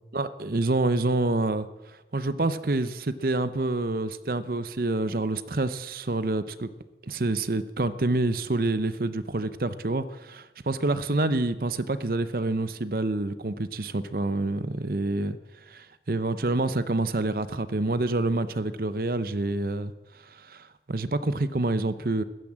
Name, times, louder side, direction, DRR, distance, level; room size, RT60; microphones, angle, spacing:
voice 1, 0.1-1.7 2.1-6.7 7.0-15.4 15.7-22.2, right 2 dB, 55° right, 13 dB, 0.7 m, -27 dB
15.0 x 12.5 x 7.4 m, 1.1 s
head